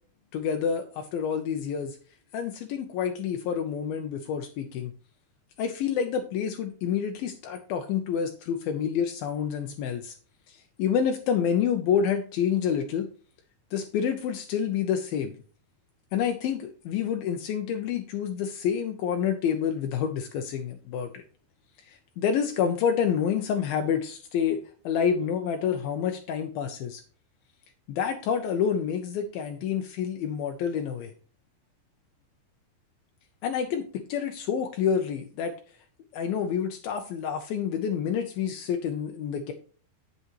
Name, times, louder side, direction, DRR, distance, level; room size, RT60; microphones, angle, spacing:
voice 1, 0.3-2.0 2.3-4.9 5.6-10.1 10.5-13.1 13.7-15.4 16.1-21.2 21.9-27.0 27.9-31.1 33.4-35.6 36.1-39.5, left 7 dB, 75° left, 5 dB, 2.4 m, -28 dB
8.4 x 8.1 x 3.1 m, 0.40 s
omnidirectional pair, 4.6 m